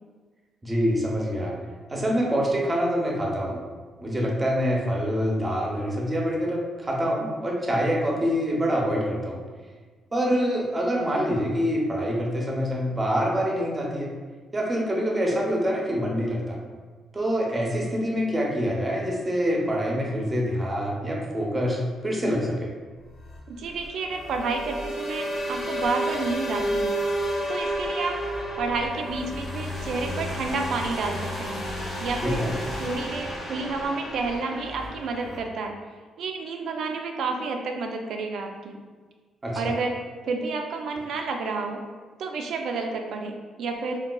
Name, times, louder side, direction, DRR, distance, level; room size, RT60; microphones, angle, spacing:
voice 1, 0.6-1.6 1.9-3.6 4.0-9.4 10.1-14.1 14.5-16.6 17.1-22.7 32.2-32.5 39.4-39.8, equal, 20° right, -2 dB, 0.6 m, -25 dB
sound 1, 23.0-35.5, equal, 50° left, 0.9 m, -31 dB
voice 2, 23.5-26.9 27.5-28.2 28.6-31.6 32.0-32.4 32.8-35.8 36.2-38.8 39.6-39.9 40.3-41.8 42.2-44.0, right 4 dB, 70° right, 3 dB, 0.4 m, -30 dB
3.6 x 2.3 x 2.2 m, 1.4 s
cardioid pair, 90°, 0 cm